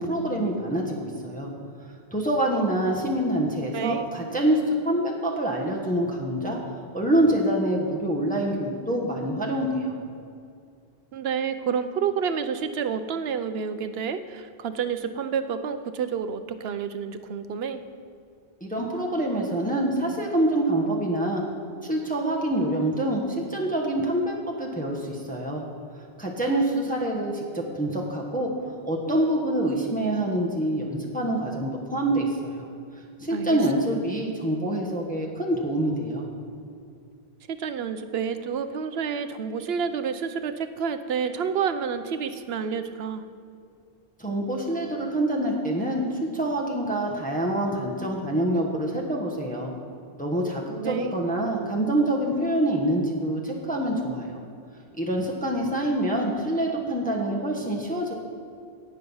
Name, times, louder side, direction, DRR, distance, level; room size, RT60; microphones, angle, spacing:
voice 1, 0.0-1.5 2.1-6.6 6.9-9.9 18.6-21.4 21.8-25.6 25.9-32.7 33.2-36.3 44.2-49.7 50.2-54.4 55.0-58.1, right 1 dB, 10° left, -2 dB, 1.2 m, -26 dB
voice 2, 3.7-4.1 11.1-17.8 33.3-33.6 37.5-43.2 50.8-51.2, right 6 dB, 75° right, 10 dB, 0.9 m, -29 dB
17.5 x 6.5 x 5.5 m, 2.4 s
omnidirectional pair, 1.1 m